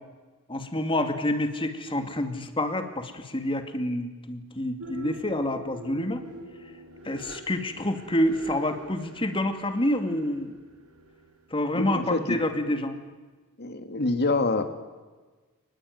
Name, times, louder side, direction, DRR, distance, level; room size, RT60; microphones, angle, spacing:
voice 1, 0.5-6.2 7.0-10.5 11.5-13.0, left 1 dB, 25° left, 7 dB, 2.4 m, -28 dB
sound 1, 4.8-12.2, right 1 dB, 90° right, 5.4 m, -44 dB
voice 2, 11.7-12.4 13.6-14.6, left 2 dB, 50° left, 8 dB, 2.4 m, -26 dB
29.0 x 20.5 x 9.6 m, 1.3 s
head